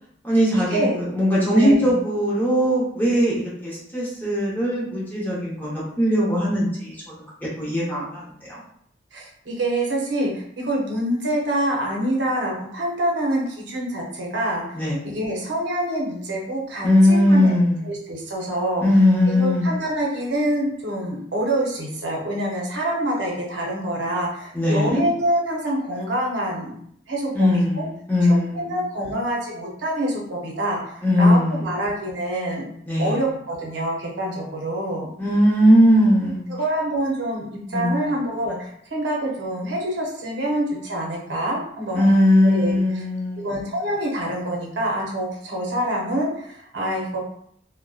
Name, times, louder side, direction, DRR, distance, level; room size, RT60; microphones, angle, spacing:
voice 1, 0.2-7.2 7.6-8.6 14.7-15.0 16.8-17.8 18.8-19.8 24.5-25.0 27.3-28.8 31.0-31.8 32.9-33.2 35.2-36.4 37.7-38.1 41.9-43.6, left 1 dB, 10° left, -7 dB, 0.8 m, -19 dB
voice 2, 1.6-1.9 9.1-14.6 15.0-17.5 17.8-18.8 19.3-26.7 27.1-27.5 27.7-27.9 28.5-32.7 33.0-35.1 36.6-42.0 42.4-42.8 43.4-47.2, right 1 dB, 70° right, -2 dB, 0.7 m, -26 dB
2.6 x 2.1 x 2.3 m, 0.67 s
head